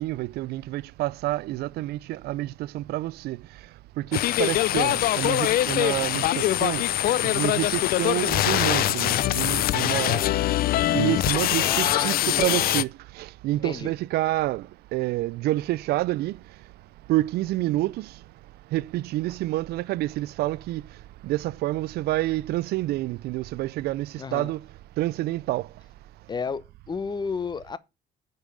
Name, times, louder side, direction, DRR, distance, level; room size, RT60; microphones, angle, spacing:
voice 1, 0.0-3.6 4.0-6.8 7.2-10.3 10.9-16.4 17.1-18.2 18.7-21.0 21.2-24.6 25.0-25.7, right 16 dB, 70° right, 0.4 m, -28 dB
sound 1, 4.1-12.8, left 14 dB, 60° left, 0.5 m, -23 dB
voice 2, 11.6-12.6 13.5-13.9 24.2-24.5 26.3-27.8, left 5 dB, 25° left, 0.8 m, -32 dB
9.5 x 5.4 x 5.2 m
cardioid pair, 110°, 17 cm